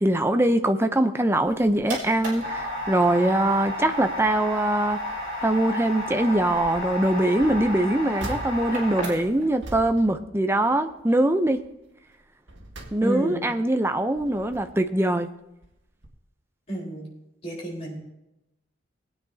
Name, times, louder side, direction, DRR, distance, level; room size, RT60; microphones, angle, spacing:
voice 1, 0.0-5.0 5.4-11.6 12.9-15.3, right 1 dB, 10° right, 7 dB, 0.6 m, -22 dB
sound 1, 1.3-9.5, left 1 dB, 45° right, 4.5 m, -32 dB
sound 2, 6.4-6.9 7.3-11.0 11.4-11.7 12.2-13.5 14.0-14.9 15.6-16.1, right 1 dB, 65° right, 1.8 m, -42 dB
voice 2, 13.0-13.4 16.7-17.1 17.4-18.0, right 1 dB, 30° left, -3 dB, 4.2 m, -30 dB
20.5 x 9.3 x 2.8 m, 0.91 s
head